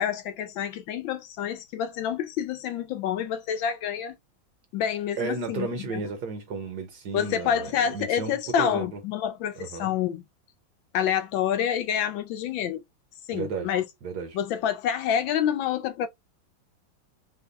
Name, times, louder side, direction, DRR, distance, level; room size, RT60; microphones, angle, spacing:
voice 1, 0.0-4.1 4.7-6.0 7.1-10.2 10.9-12.8 13.3-13.8 14.3-16.1, left 9 dB, 75° left, 1.3 m, -28 dB
voice 2, 5.2-9.0 9.6-9.9 13.3-13.7 14.0-14.4, right 4 dB, 65° right, 1.1 m, -33 dB
3.4 x 2.3 x 3.8 m
omnidirectional pair, 2.2 m